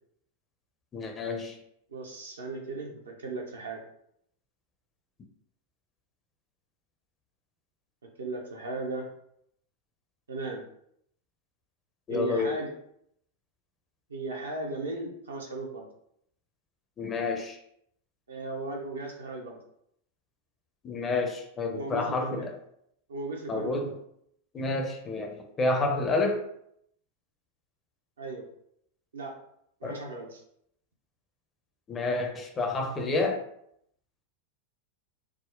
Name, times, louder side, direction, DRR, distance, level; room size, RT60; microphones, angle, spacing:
voice 1, 0.9-1.5 12.1-12.6 17.0-17.6 20.8-22.5 23.5-23.9 24.5-26.4 29.8-30.0 31.9-33.4, left 3 dB, 25° left, 3 dB, 0.5 m, -29 dB
voice 2, 1.9-3.8 8.0-9.1 10.3-10.6 12.1-12.7 14.1-15.9 18.3-19.6 21.7-22.5 23.1-23.8 28.2-28.5 29.1-29.4 29.8-30.4, right 3 dB, 70° right, 1 dB, 0.6 m, -36 dB
3.5 x 2.0 x 2.4 m, 0.72 s
figure-of-eight pair, 90°, 0 cm